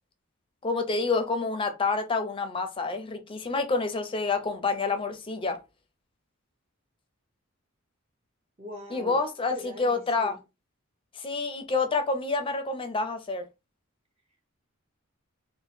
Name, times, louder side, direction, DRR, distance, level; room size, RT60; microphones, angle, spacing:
voice 1, 0.6-5.6 8.9-10.3 11.2-13.4, left 3 dB, 25° left, 0.5 m, -28 dB
voice 2, 8.6-10.4, left 1 dB, 30° right, 0.6 m, -42 dB
2.9 x 2.1 x 4.1 m
head